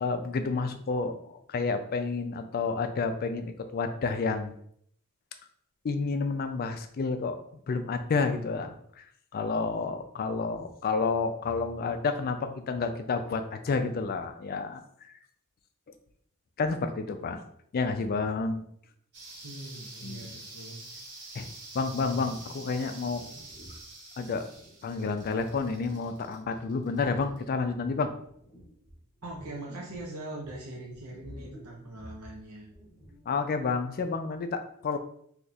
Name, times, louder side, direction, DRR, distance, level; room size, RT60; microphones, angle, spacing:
voice 1, 0.0-4.5 5.8-7.3 7.7-9.1 9.3-15.1 16.6-17.4 17.7-18.6 20.0-20.3 21.3-21.5 21.7-23.2 24.2-24.4 24.8-28.1 33.3-35.0, left 4 dB, 45° left, 8 dB, 0.4 m, -30 dB
sound 1, 19.1-27.4, right 2 dB, 50° right, 1.1 m, -47 dB
voice 2, 19.4-20.9 29.2-32.7, right 2 dB, 85° right, -2 dB, 0.7 m, -42 dB
sound 2, 22.0-23.9 24.5-26.6 27.1-27.4 28.0-30.1 30.4-33.3, equal, 20° left, 1.0 m, -50 dB
2.8 x 2.4 x 4.1 m, 0.67 s
head